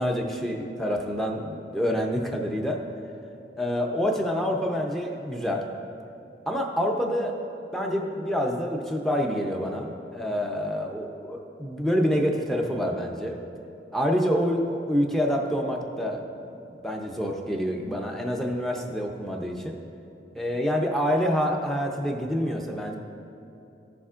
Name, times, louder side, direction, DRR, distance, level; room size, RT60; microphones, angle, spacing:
voice 1, 0.0-2.8 3.6-5.6 6.5-7.3 7.7-13.4 13.9-16.5 16.8-19.8 20.3-23.0, equal, ahead, 1 dB, 0.6 m, -27 dB
14.0 x 7.0 x 2.5 m, 2.8 s
head